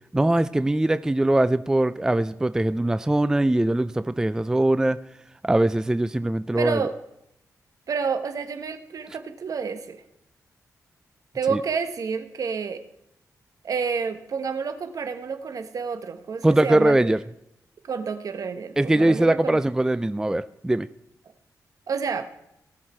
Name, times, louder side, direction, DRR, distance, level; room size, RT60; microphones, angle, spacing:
voice 1, 0.1-5.0 5.4-6.8 11.5-11.6 16.4-17.2 18.8-20.9, right 1 dB, 10° right, 14 dB, 0.4 m, -21 dB
voice 2, 6.6-6.9 7.9-10.0 11.3-12.8 13.6-17.1 17.8-19.6 21.9-22.3, right 5 dB, 65° right, 10 dB, 1.2 m, -29 dB
19.0 x 6.5 x 4.4 m, 0.79 s
cardioid pair, 90°, 6 cm